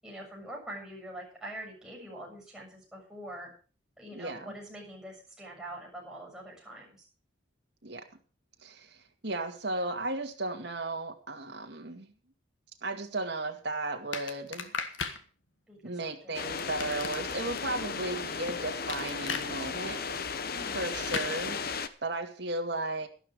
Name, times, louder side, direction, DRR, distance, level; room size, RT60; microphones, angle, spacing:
voice 1, 0.0-3.5 4.0-7.1 15.7-16.4 20.5-20.8, right 1 dB, 5° right, -3 dB, 7.2 m, -44 dB
voice 2, 4.1-4.5 7.8-8.0 8.6-12.1 12.8-14.7 15.8-20.0 20.7-23.1, right 2 dB, 60° right, 3 dB, 2.2 m, -35 dB
sound 1, 14.1-15.2 16.6-17.6 18.9-19.5 21.1-21.3, left 5 dB, 80° left, 1.6 m, -35 dB
sound 2, 16.3-21.9, left 5 dB, 50° left, 0.9 m, -35 dB
12.5 x 12.0 x 5.0 m, 0.38 s
head